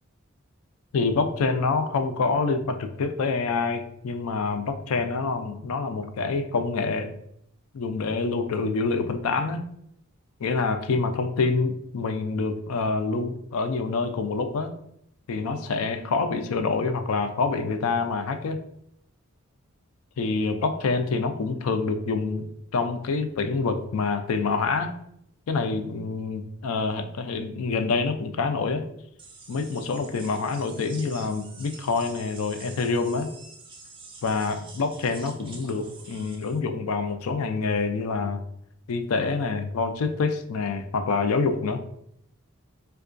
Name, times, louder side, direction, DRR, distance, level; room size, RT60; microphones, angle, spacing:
voice 1, 0.9-7.2 7.7-9.6 10.4-14.7 15.3-18.6 20.2-22.5 22.7-24.9 25.5-28.8 29.5-33.3 34.2-38.4 38.9-41.8, left 4 dB, 85° left, 7 dB, 0.4 m, -26 dB
sound 1, 29.2-36.6, right 4 dB, 25° right, 0.4 m, -47 dB
4.4 x 2.3 x 2.5 m, 0.72 s
head